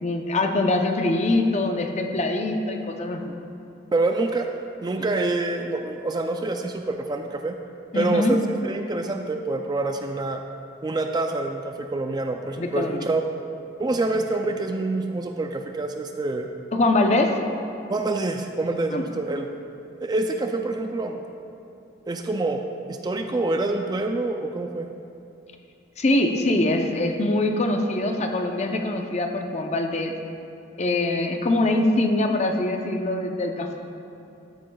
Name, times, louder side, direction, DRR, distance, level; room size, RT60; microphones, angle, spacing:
voice 1, 0.0-3.2 7.9-8.3 12.6-13.0 16.7-17.3 18.9-19.1 26.0-30.1 30.8-33.8, left 2 dB, 35° left, 4 dB, 0.6 m, -23 dB
voice 2, 3.9-4.5 4.8-7.6 7.9-8.4 8.6-10.4 10.8-13.2 13.8-16.5 17.9-19.5 20.0-21.2 22.1-22.6 22.9-24.9, right 2 dB, 20° right, 5 dB, 0.3 m, -26 dB
13.0 x 8.6 x 2.3 m, 2.7 s
head